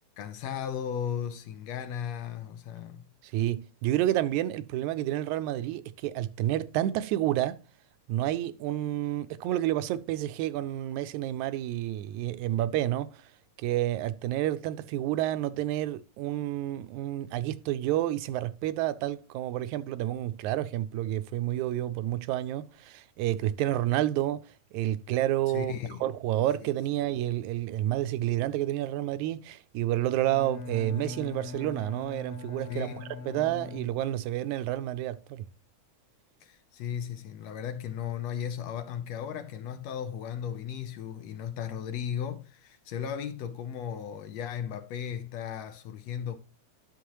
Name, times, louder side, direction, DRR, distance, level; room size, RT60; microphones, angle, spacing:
voice 1, 0.2-3.0 25.5-26.0 26.6-26.7 27.0-27.2 32.7-33.1 36.4-46.4, left 8 dB, 70° left, 1.8 m, -36 dB
voice 2, 3.2-7.6 8.1-13.1 13.6-24.5 24.7-25.7 26.0-35.5, right 13 dB, 85° right, 1.9 m, -29 dB
Bowed string instrument, 30.1-34.4, left 4 dB, 50° left, 1.6 m, -42 dB
11.5 x 6.1 x 3.0 m
omnidirectional pair, 3.4 m